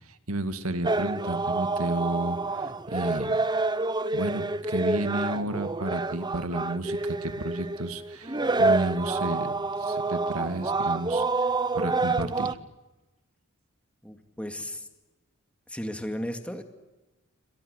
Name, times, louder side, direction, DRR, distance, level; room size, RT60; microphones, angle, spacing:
voice 1, 0.0-3.4 4.1-9.5 9.8-12.6, right 1 dB, 90° right, 10 dB, 2.1 m, -32 dB
sound 1, 0.8-12.5, right 3 dB, 20° right, 0.9 m, -28 dB
voice 2, 14.0-14.9 15.7-16.6, equal, 5° left, 6 dB, 2.2 m, -35 dB
29.0 x 24.0 x 8.3 m, 1.1 s
head